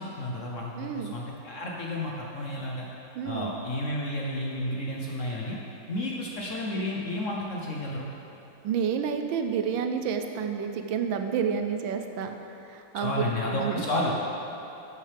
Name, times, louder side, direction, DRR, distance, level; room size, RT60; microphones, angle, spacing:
voice 1, 0.0-2.9 3.2-5.6 5.9-8.1 13.0-14.1, left 1 dB, 60° left, -3 dB, 0.8 m, -31 dB
voice 2, 0.7-1.1 3.2-3.6 8.6-12.4 12.7-13.3 13.5-13.9, right 7 dB, 75° right, 6 dB, 1.3 m, -29 dB
11.0 x 8.7 x 3.4 m, 3.0 s
omnidirectional pair, 2.2 m